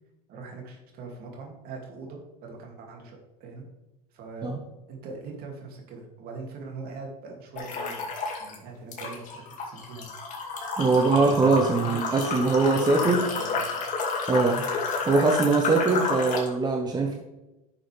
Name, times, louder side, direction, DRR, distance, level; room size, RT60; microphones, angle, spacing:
voice 1, 0.3-3.6 4.1-4.5 4.9-8.1 8.4-10.1 10.9-13.8, right 4 dB, 50° right, 1 dB, 2.6 m, -41 dB
sound 1, 7.5-8.5 8.9-16.5, left 4 dB, 40° left, 2.5 m, -30 dB
voice 2, 10.8-13.2 14.3-14.6 15.1-17.2, right 3 dB, 20° right, 2 dB, 1.2 m, -22 dB
10.5 x 6.4 x 3.4 m, 1.0 s
hypercardioid pair, 85°, 20 cm